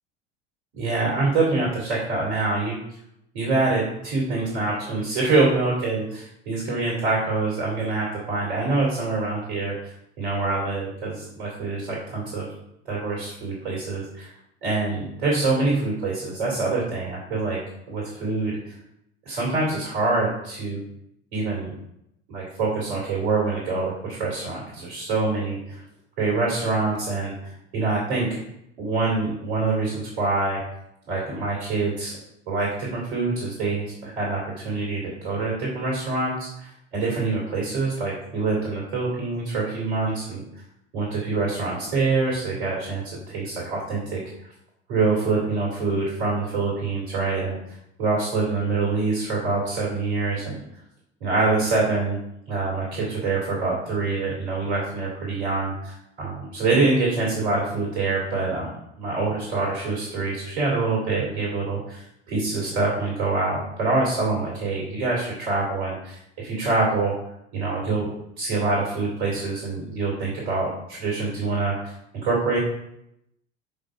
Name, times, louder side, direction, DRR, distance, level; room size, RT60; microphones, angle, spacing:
voice 1, 0.7-2.8 3.3-9.7 10.2-12.5 12.9-14.3 14.6-17.6 17.9-18.7 19.2-20.8 21.3-21.7 22.3-25.8 26.2-28.3 28.8-30.6 31.1-32.1 32.5-40.4 40.9-44.2 44.9-47.6 48.0-50.6 51.2-52.2 52.5-58.7 59.0-67.1 67.5-68.1 68.4-72.6, right 3 dB, 65° right, -3 dB, 2.8 m, -25 dB
6.7 x 5.3 x 4.5 m, 0.80 s
figure-of-eight pair, 70°, 34 cm